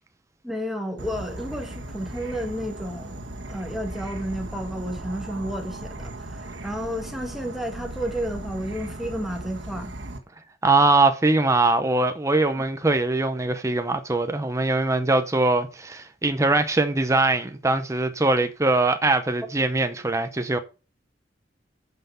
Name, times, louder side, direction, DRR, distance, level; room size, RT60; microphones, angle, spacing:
voice 1, 0.4-3.2 3.5-9.9, equal, ahead, 1.6 m, -31 dB
Insect / Frog, 1.0-10.2, right 1 dB, 80° right, 1.7 m, -37 dB
voice 2, 10.6-20.6, right 2 dB, 15° right, 0.7 m, -22 dB
9.1 x 5.8 x 5.6 m
head